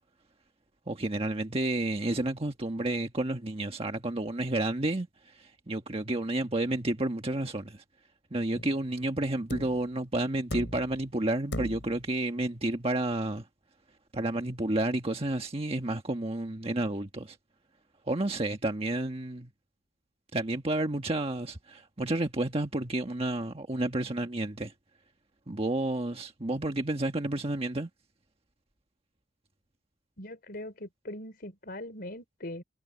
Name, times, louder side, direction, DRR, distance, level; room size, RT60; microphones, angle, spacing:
voice 1, 0.9-7.8 8.3-13.4 14.1-17.4 18.1-19.5 20.3-24.7 25.5-27.9, right 1 dB, 35° right, 1.4 m, -31 dB
sound 1, 8.5-8.8 9.5-9.9 10.5-11.0 11.5-12.0 13.4-13.5, left 1 dB, 80° left, 7.9 m, -38 dB
voice 2, 30.2-32.6, left 1 dB, 55° left, 4.3 m, -41 dB
head